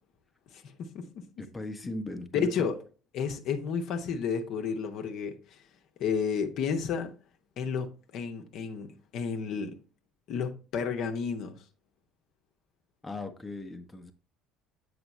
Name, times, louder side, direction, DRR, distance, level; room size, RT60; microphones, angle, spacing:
voice 1, 0.5-1.3 2.3-2.8 3.1-5.6 6.0-7.1 7.6-9.8 10.3-11.6, left 6 dB, 55° left, 0.9 m, -32 dB
voice 2, 1.4-2.7 13.0-14.1, left 2 dB, 15° left, 0.8 m, -38 dB
7.9 x 5.0 x 3.2 m
figure-of-eight pair, 55°, 0 cm